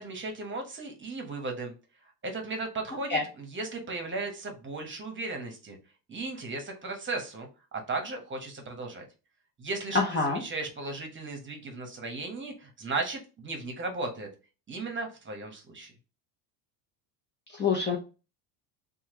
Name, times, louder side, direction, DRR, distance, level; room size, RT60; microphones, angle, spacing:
voice 1, 0.0-1.7 2.2-5.8 6.1-9.0 9.6-14.3 14.7-15.9, right 3 dB, 25° right, 3 dB, 1.0 m, -36 dB
voice 2, 9.9-10.4 17.6-18.0, left 4 dB, 20° left, -1 dB, 0.6 m, -25 dB
3.1 x 2.3 x 3.0 m, 0.31 s
supercardioid pair, 100°, 50 cm